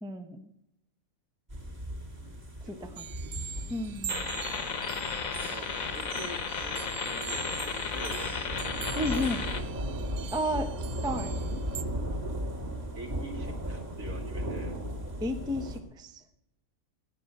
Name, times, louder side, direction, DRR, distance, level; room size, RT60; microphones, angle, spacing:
voice 1, 0.0-0.5 2.7-3.1 3.7-4.3 9.0-9.4 10.3-11.3 15.2-16.2, left 1 dB, 5° right, 7 dB, 0.7 m, -33 dB
sound 1, 1.5-15.8, equal, 30° right, 2.0 m, -37 dB
voice 2, 2.2-3.0 3.5-3.6 5.5-10.0 11.0-11.2 12.9-14.8, right 1 dB, 65° right, 3 dB, 2.7 m, -45 dB
sound 2, 3.0-11.8, right 9 dB, 80° right, 1.3 m, -43 dB
sound 3, 4.1-9.6, left 6 dB, 65° left, 1.6 m, -34 dB
15.0 x 9.6 x 6.6 m, 0.83 s
omnidirectional pair, 1.6 m